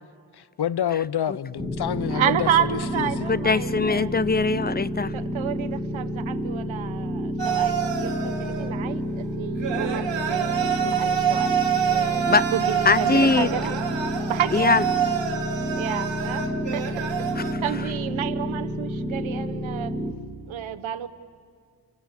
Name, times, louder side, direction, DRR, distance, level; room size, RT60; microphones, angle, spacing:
voice 1, 0.3-3.3, left 10 dB, 55° left, 0.8 m, -28 dB
sound 1, 1.6-20.1, equal, 5° right, 2.9 m, -30 dB
voice 2, 2.1-4.1 5.1-11.5 11.9-12.2 12.5-13.7 14.3-14.7 15.8-17.3 17.6-20.0 20.5-21.1, right 10 dB, 90° right, 1.1 m, -30 dB
voice 3, 3.3-5.1 12.3-12.5 12.8-13.5 14.5-14.8 17.4-17.5, left 4 dB, 20° left, 0.7 m, -21 dB
sound 2, 7.4-8.7 9.6-17.5, right 8 dB, 65° right, 2.8 m, -26 dB
29.5 x 25.0 x 7.9 m
cardioid pair, 75°, 46 cm